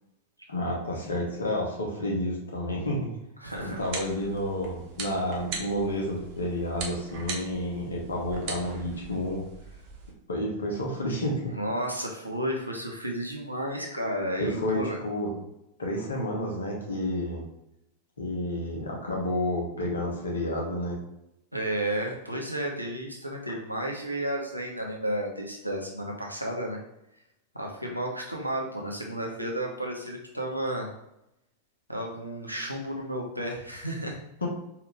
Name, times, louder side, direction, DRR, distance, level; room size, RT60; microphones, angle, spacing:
voice 1, 0.5-3.1 3.6-9.5 10.3-11.5 14.4-15.3 15.8-17.4 18.2-21.0 34.4-34.5, left 1 dB, 70° left, -2 dB, 1.2 m, -30 dB
voice 2, 3.4-3.9 11.5-15.0 21.5-26.8 27.5-30.9 31.9-34.2, right 1 dB, 90° right, 0 dB, 0.8 m, -32 dB
sound 1, 3.6-10.1, right 4 dB, 45° right, 0.9 m, -40 dB
4.7 x 2.9 x 3.3 m, 0.82 s
figure-of-eight pair, 90°, 0 cm